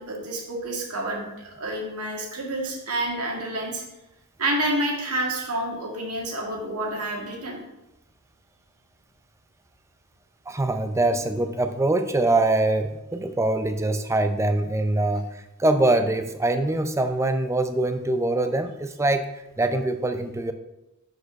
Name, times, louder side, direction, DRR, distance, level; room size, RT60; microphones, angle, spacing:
voice 1, 0.0-3.8 4.4-7.6, right 1 dB, 85° right, 0 dB, 1.9 m, -29 dB
voice 2, 10.5-20.5, right 2 dB, 15° right, 8 dB, 0.4 m, -23 dB
6.2 x 5.3 x 5.6 m, 0.93 s
head